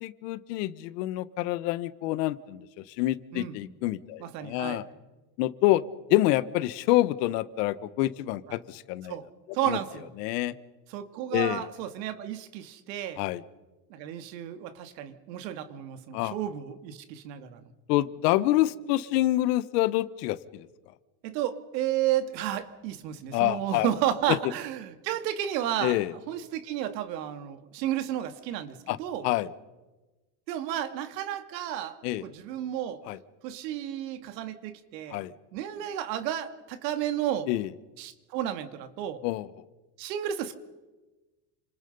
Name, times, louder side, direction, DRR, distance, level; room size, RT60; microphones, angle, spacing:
voice 1, 0.0-4.8 5.4-5.8 6.1-9.2 9.7-9.8 10.2-10.5 11.3-11.7 13.2-13.4 16.1-16.3 17.9-20.7 23.3-23.9 24.3-24.4 25.8-26.1 28.9-29.0 29.2-29.5 32.0-32.2 33.1-33.2 35.1-35.3 37.5-37.7 39.2-39.5, left 16 dB, 70° left, 15 dB, 1.4 m, -27 dB
voice 2, 4.2-4.8 9.1-9.3 9.5-10.1 10.9-13.2 13.9-17.6 21.2-29.2 30.5-33.0 33.4-35.2 35.5-37.5 38.0-39.2 40.0-40.6, right 11 dB, 75° right, 10 dB, 2.4 m, -32 dB
29.0 x 26.5 x 5.5 m, 1.2 s
supercardioid pair, 140°, 50 cm